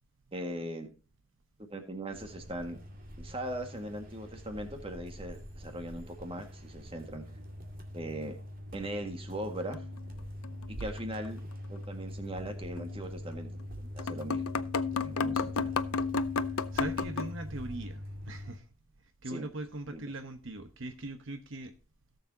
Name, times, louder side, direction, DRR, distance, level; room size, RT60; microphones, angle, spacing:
voice 1, 0.3-0.9 1.7-2.8 3.2-7.2 7.9-8.4 8.7-9.8 10.8-11.4 11.7-13.5 13.8-14.7 15.0-15.7 19.3-19.5 19.9-20.0, right 1 dB, 25° right, 1.8 m, -39 dB
sound 1, 2.1-18.6, equal, 40° right, 2.2 m, -43 dB
sound 2, 9.7-11.0 11.3-11.4 12.8-13.0 13.6-13.7 14.0-17.3, left 5 dB, 80° left, 0.6 m, -32 dB
voice 2, 16.7-18.7 19.2-21.7, right 2 dB, 60° right, 1.0 m, -40 dB
17.5 x 7.1 x 2.8 m
head